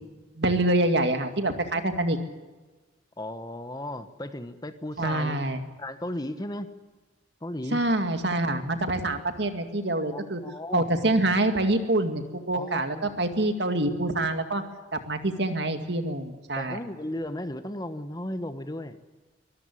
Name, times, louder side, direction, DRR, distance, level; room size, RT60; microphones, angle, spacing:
voice 1, 0.4-2.2 5.0-5.6 7.7-10.4 10.7-14.6 14.9-16.8, right 1 dB, 65° right, 7 dB, 2.2 m, -26 dB
voice 2, 3.2-5.4 5.8-6.7 7.4-7.8 10.1-10.9 12.5-13.0 16.6-19.0, left 1 dB, 20° left, 10 dB, 1.1 m, -35 dB
24.0 x 14.0 x 9.9 m, 1.3 s
head